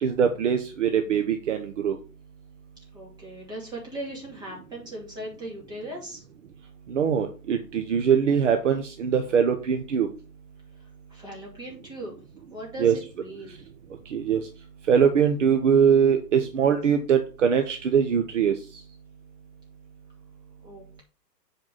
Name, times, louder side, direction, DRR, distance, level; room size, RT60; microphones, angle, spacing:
voice 1, 0.0-2.0 6.9-10.1 12.8-12.9 14.1-14.4 14.9-18.5, right 7 dB, 45° right, 6 dB, 1.0 m, -22 dB
voice 2, 2.9-6.2 10.8-12.1 12.5-13.6 20.6-21.0, right 1 dB, 10° right, -4 dB, 2.7 m, -39 dB
7.7 x 4.7 x 5.5 m, 0.34 s
hypercardioid pair, 155°, 50 cm